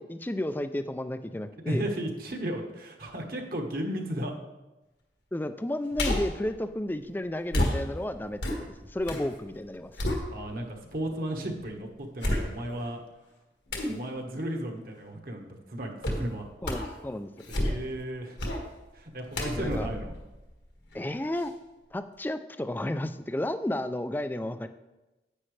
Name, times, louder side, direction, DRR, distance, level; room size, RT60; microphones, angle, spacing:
voice 1, 0.0-1.8 5.3-8.4 8.9-9.9 16.6-17.3 19.6-19.9 20.9-21.5 21.9-24.7, left 1 dB, 10° left, 10 dB, 0.3 m, -32 dB
voice 2, 1.7-4.3 10.3-13.0 13.9-16.5 17.5-18.4 18.9-20.2, right 1 dB, 55° right, 2 dB, 1.3 m, -34 dB
sound 1, 5.9-6.4 7.5-9.3 9.6-10.8 11.3-11.4 12.2-12.9 13.7-14.0 16.0-16.3 16.6-17.0 17.4-18.0 18.4-18.7 19.3-21.0 21.4-21.5, left 1 dB, 75° left, 1.6 m, -31 dB
9.9 x 8.8 x 3.3 m, 1.1 s
head